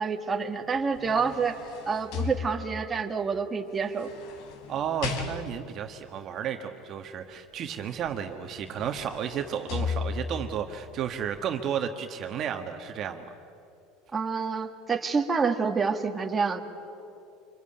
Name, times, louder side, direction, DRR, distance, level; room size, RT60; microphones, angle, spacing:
voice 1, 0.0-1.6 1.9-4.1 14.1-16.6, right 5 dB, 20° right, 4 dB, 1.8 m, -28 dB
sound 1, 0.8-3.0 3.8-5.8 8.1-8.2 8.5-10.5 11.1-11.2, left 5 dB, 65° left, 3.2 m, -36 dB
voice 2, 4.7-13.2, right 8 dB, 40° right, 6 dB, 1.5 m, -32 dB
26.0 x 24.0 x 8.9 m, 2.7 s
supercardioid pair, 125°, 0 cm